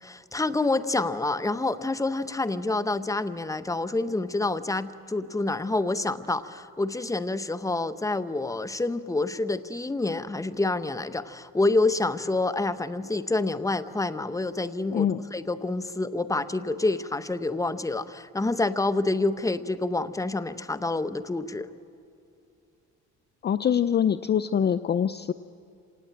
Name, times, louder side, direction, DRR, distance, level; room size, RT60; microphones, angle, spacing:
voice 1, 0.0-21.7, left 2 dB, 10° left, 12 dB, 0.9 m, -27 dB
voice 2, 14.9-15.2 23.4-25.3, left 8 dB, 35° left, 13 dB, 0.5 m, -24 dB
27.0 x 18.5 x 8.7 m, 2.5 s
cardioid pair, 90°, 30 cm